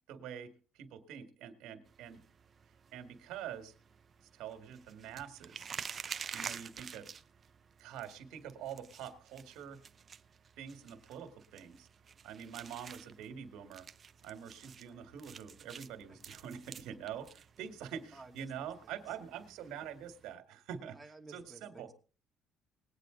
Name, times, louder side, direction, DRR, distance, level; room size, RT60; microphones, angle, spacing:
voice 1, 0.1-2.2 2.9-3.7 4.3-5.7 6.3-7.1 7.8-9.8 10.6-11.9 12.2-13.9 14.2-21.0 21.3-21.9, right 8 dB, 85° right, 7 dB, 1.7 m, -45 dB
sound 1, 1.9-20.3, right 6 dB, 40° right, 0.6 m, -50 dB
voice 2, 18.1-19.2 20.8-21.9, right 2 dB, 5° right, 0 dB, 2.6 m, -55 dB
20.5 x 8.9 x 3.8 m, 0.38 s
cardioid pair, 110°, 0 cm